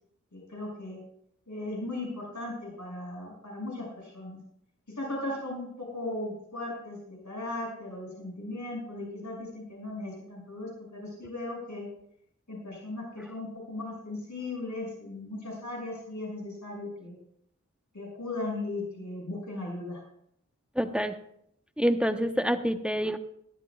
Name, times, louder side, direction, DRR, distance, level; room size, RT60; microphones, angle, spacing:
voice 1, 0.3-1.0 1.5-4.4 5.0-11.9 12.5-17.2 17.9-20.0, left 2 dB, 70° left, -3 dB, 6.2 m, -37 dB
voice 2, 20.8-21.1 21.8-23.2, equal, 5° right, 8 dB, 0.9 m, -27 dB
20.5 x 13.5 x 2.4 m, 0.72 s
wide cardioid pair, 45°, 30 cm